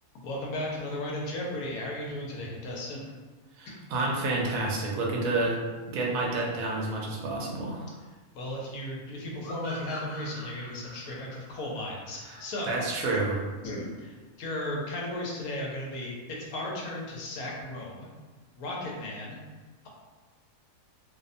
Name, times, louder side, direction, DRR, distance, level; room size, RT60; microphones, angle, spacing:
voice 1, 0.2-3.0 8.3-12.7 13.6-18.1 18.6-19.4, left 1 dB, 90° left, -2 dB, 1.1 m, -35 dB
voice 2, 3.6-5.6 5.9-7.9 12.3-13.4, right 2 dB, 75° right, -2 dB, 1.0 m, -29 dB
sound 1, 9.4-12.8, left 1 dB, 45° left, 1.2 m, -44 dB
2.7 x 2.1 x 2.5 m, 1.3 s
omnidirectional pair, 1.5 m